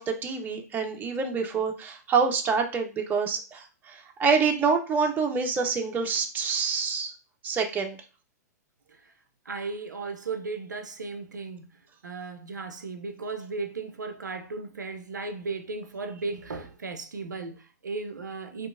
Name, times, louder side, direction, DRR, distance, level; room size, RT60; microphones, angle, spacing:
voice 1, 0.0-7.1 7.4-8.0, right 5 dB, 20° right, 0.5 m, -26 dB
voice 2, 9.5-11.8 12.0-18.7, right 3 dB, 90° right, 0.4 m, -36 dB
2.8 x 2.3 x 2.4 m
hypercardioid pair, 110°, 9 cm